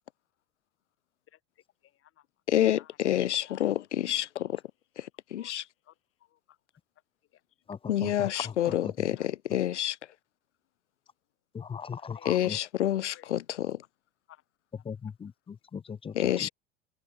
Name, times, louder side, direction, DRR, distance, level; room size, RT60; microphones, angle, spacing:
voice 1, 1.3-2.2 2.7-3.0 3.2-3.6 5.4-5.5 5.8-6.6 7.3-7.4 8.3-8.8 9.1-9.3 12.0-12.5 13.1-13.3 14.3-14.4 14.8-14.9, left 12 dB, 40° left, 3.3 m, -57 dB
voice 2, 2.5-4.6 5.0-5.6 7.9-10.0 12.2-13.8 16.1-16.5, left 12 dB, 80° left, 0.8 m, -28 dB
voice 3, 7.7-8.9 11.5-12.6 14.8-16.1 16.4-16.5, left 6 dB, 15° left, 0.6 m, -39 dB
open air
hypercardioid pair, 80°, 35 cm